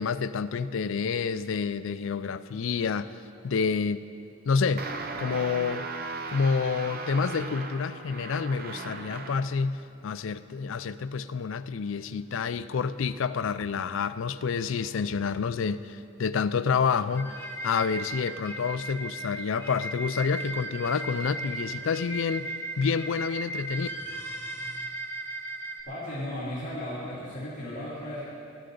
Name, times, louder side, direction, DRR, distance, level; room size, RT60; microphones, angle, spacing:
voice 1, 0.0-3.1 3.4-4.1 4.5-4.9 5.2-5.9 6.3-17.4 17.6-23.9, left 5 dB, 65° left, 13 dB, 0.4 m, -28 dB
sound 1, 4.8-9.6, right 3 dB, 45° right, 0.6 m, -37 dB
sound 2, 17.2-25.8, right 2 dB, 10° left, 1.0 m, -37 dB
voice 2, 25.9-28.2, left 1 dB, 35° left, -10 dB, 3.0 m, -35 dB
19.5 x 12.0 x 3.9 m, 2.5 s
head